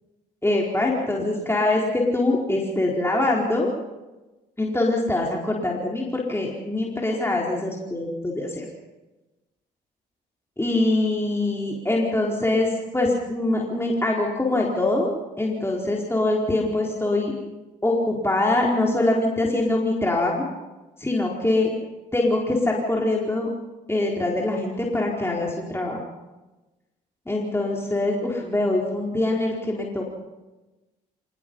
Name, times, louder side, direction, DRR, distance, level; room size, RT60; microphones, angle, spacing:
voice 1, 0.4-3.7 4.6-8.7 10.6-17.3 17.8-20.5 21.0-21.7 22.1-23.5 23.9-26.0 27.3-30.1, left 2 dB, 10° left, -2 dB, 4.5 m, -23 dB
26.0 x 19.5 x 5.6 m, 1.1 s
hypercardioid pair, 55°, 20 cm